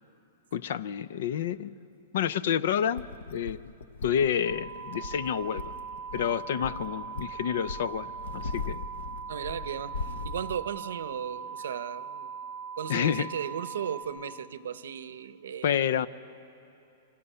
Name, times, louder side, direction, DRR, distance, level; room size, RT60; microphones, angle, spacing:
voice 1, 0.5-1.7 2.1-3.0 3.3-3.7 4.0-5.7 6.1-8.8 12.9-13.3 15.6-16.1, left 8 dB, 50° left, 18 dB, 0.5 m, -29 dB
sound 1, 3.0-10.6, left 4 dB, 90° left, 0.9 m, -40 dB
sound 2, 4.4-14.0, right 6 dB, 5° left, 4.6 m, -40 dB
voice 2, 9.3-9.9 10.2-12.3 12.8-15.8, right 8 dB, 85° right, 14 dB, 0.7 m, -36 dB
28.5 x 25.0 x 5.6 m, 2.7 s
supercardioid pair, 180°, 0 cm